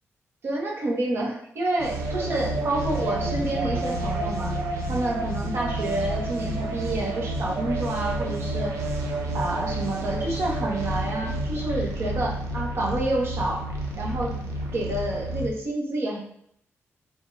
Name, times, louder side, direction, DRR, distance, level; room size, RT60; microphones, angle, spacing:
voice 1, 0.4-4.5 4.9-8.8 9.3-13.6 14.0-14.4 14.7-16.2, right 1 dB, 50° right, -1 dB, 1.5 m, -28 dB
sound 1, 1.8-15.5, right 1 dB, 85° right, 1.2 m, -30 dB
5.3 x 3.8 x 4.7 m, 0.68 s
wide cardioid pair, 175°, 5 cm